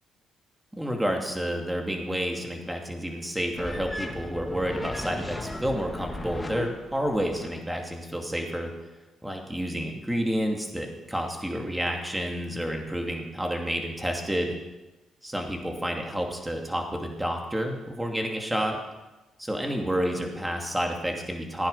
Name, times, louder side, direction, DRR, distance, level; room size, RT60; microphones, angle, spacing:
voice 1, 0.7-8.7 9.2-14.6 15.2-18.8 19.4-21.7, equal, 10° right, 2 dB, 2.6 m, -30 dB
sound 1, 3.6-7.6, left 1 dB, 10° left, 1.8 m, -36 dB
15.5 x 9.6 x 5.6 m, 1.1 s
cardioid pair, 90°, 0 cm